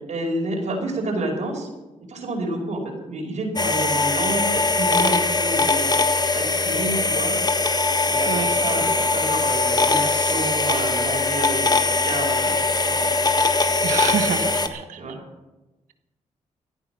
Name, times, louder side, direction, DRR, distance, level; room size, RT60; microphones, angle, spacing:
voice 1, 0.1-1.7 2.1-5.8 6.3-7.4 8.0-12.6 12.8-13.2 13.7-14.1 15.0-15.2, right 2 dB, 65° right, 0 dB, 5.0 m, -29 dB
sound 1, 3.6-14.7, left 3 dB, 30° left, 1.6 m, -21 dB
voice 2, 13.8-15.0, right 8 dB, 85° right, 9 dB, 1.2 m, -27 dB
16.5 x 11.0 x 6.1 m, 1.1 s
cardioid pair, 60°, 13 cm